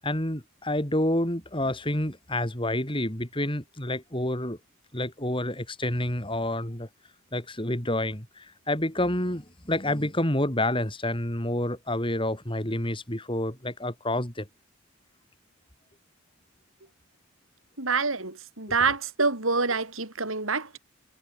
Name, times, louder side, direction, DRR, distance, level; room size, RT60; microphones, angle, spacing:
voice 1, 0.0-4.6 4.9-6.9 7.3-14.5, left 1 dB, 25° left, 4.6 m, -28 dB
voice 2, 17.8-20.8, right 4 dB, 70° right, 4.8 m, -26 dB
head